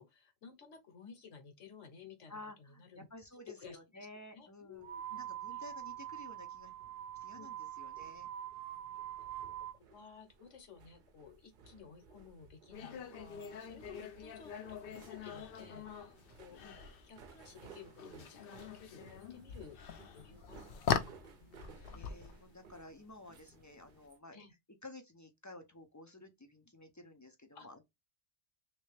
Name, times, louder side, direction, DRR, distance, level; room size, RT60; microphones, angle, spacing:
voice 1, 0.0-3.1 3.5-4.1 4.3-5.2 5.5-5.6 7.3-7.5 9.7-16.8 17.0-19.8 20.1-21.8 24.3-24.5 27.5-27.7, left 6 dB, 75° left, 1.4 m, -55 dB
voice 2, 2.3-4.8 5.2-6.7 7.1-8.3 21.9-24.4 24.8-27.8, left 2 dB, 30° left, 0.3 m, -53 dB
sound 1, 4.8-9.8, right 11 dB, 80° right, 0.9 m, -44 dB
sound 2, 6.2-24.2, right 5 dB, 50° right, 0.7 m, -59 dB
sound 3, 12.7-24.0, left 7 dB, 60° left, 0.7 m, -42 dB
3.3 x 2.8 x 3.2 m
omnidirectional pair, 1.3 m